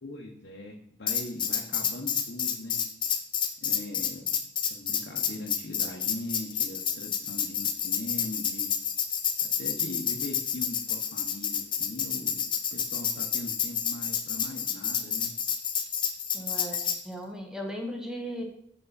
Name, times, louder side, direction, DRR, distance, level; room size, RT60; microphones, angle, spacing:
voice 1, 0.0-2.8 3.6-4.3 4.7-8.7 9.6-15.3, left 2 dB, 70° left, 0 dB, 0.8 m, -40 dB
Tambourine, 1.1-17.0, left 8 dB, 25° left, 0.6 m, -29 dB
voice 2, 16.3-18.4, equal, 5° right, 2 dB, 0.9 m, -37 dB
6.8 x 5.6 x 4.0 m, 0.69 s
head